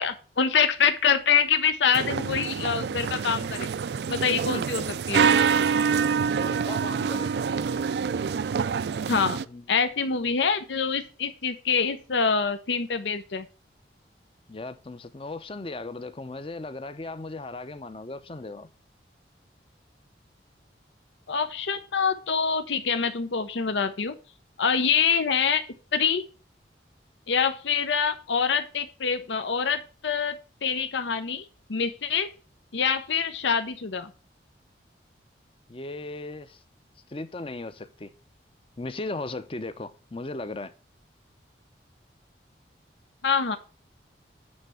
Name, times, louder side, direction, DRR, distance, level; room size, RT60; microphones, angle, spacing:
voice 1, 0.0-3.7 4.1-5.4 9.1-9.4 9.7-13.5 21.3-24.1 24.6-25.6 25.9-26.2 27.3-32.3 32.7-34.1 43.2-43.6, left 6 dB, 85° left, 0.7 m, -25 dB
sound 1, 1.9-9.4, right 6 dB, 65° right, 0.4 m, -26 dB
voice 2, 6.4-7.3 9.1-9.7 10.1-10.3 14.5-18.7 35.7-36.6 37.1-38.1 38.8-40.7, left 2 dB, 30° left, 0.6 m, -37 dB
9.6 x 3.3 x 6.8 m
head